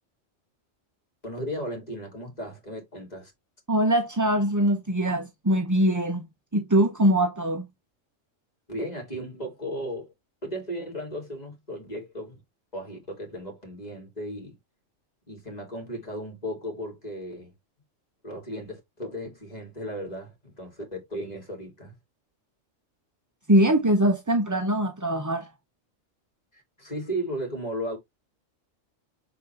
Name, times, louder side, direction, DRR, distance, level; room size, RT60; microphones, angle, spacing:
voice 1, 1.2-3.3 8.7-10.1 10.4-12.4 12.7-14.5 15.3-17.5 18.2-21.9 26.5-28.0, equal, 30° left, 3.2 m, -35 dB
voice 2, 3.7-6.3 6.5-7.7 23.5-25.5, right 1 dB, 20° right, 0.6 m, -22 dB
7.0 x 4.5 x 3.4 m
omnidirectional pair, 1.3 m